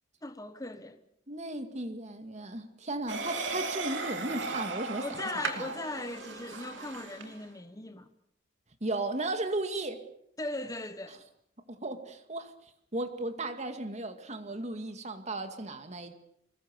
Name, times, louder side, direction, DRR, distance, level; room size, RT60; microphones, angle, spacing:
voice 1, 0.2-1.0 5.0-8.1 10.4-11.2, left 2 dB, 20° left, 1.3 m, -38 dB
voice 2, 1.3-5.7 8.8-10.0 11.7-12.5 12.9-16.1, right 2 dB, 35° right, 2.2 m, -35 dB
sound 1, 3.1-7.4, right 3 dB, 70° right, 2.9 m, -36 dB
26.0 x 21.0 x 7.1 m
head